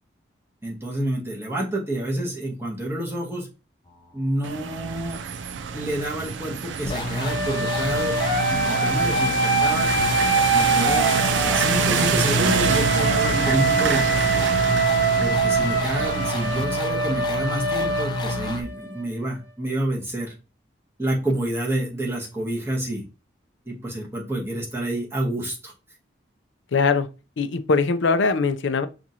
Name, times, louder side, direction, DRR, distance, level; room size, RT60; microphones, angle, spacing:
voice 1, 0.6-3.5 4.1-5.2 5.7-8.2 8.5-9.9 10.5-11.1 11.3-14.4 15.2-20.3 21.0-23.0 23.7-25.7, right 1 dB, 15° right, 1.1 m, -28 dB
sound 1, 4.4-16.6, right 6 dB, 85° right, 0.4 m, -27 dB
sound 2, 6.8-18.6, left 2 dB, 25° left, 0.5 m, -30 dB
sound 3, 7.2-19.0, right 3 dB, 50° right, 2.0 m, -24 dB
voice 2, 26.7-27.1 27.4-28.9, left 4 dB, 85° left, 0.5 m, -21 dB
6.0 x 2.5 x 2.8 m
head